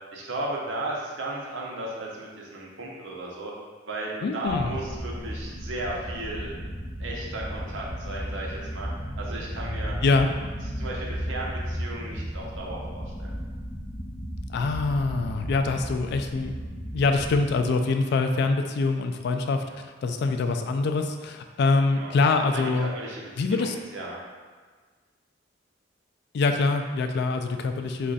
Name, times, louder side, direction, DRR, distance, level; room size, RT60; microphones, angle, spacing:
voice 1, 0.1-3.5 3.9-6.5 7.0-8.9 9.2-9.9 10.8-13.4 19.7-19.8 21.9-22.1 22.5-24.2, right 1 dB, 85° right, -3 dB, 0.7 m, -35 dB
voice 2, 4.2-4.7 10.0-10.3 14.5-16.5 16.9-19.6 20.0-22.9 23.4-23.8 26.3-28.1, left 3 dB, 60° left, 6 dB, 0.3 m, -24 dB
sound 1, 4.4-17.5, equal, 25° left, 0.8 m, -35 dB
3.2 x 2.5 x 3.9 m, 1.5 s
head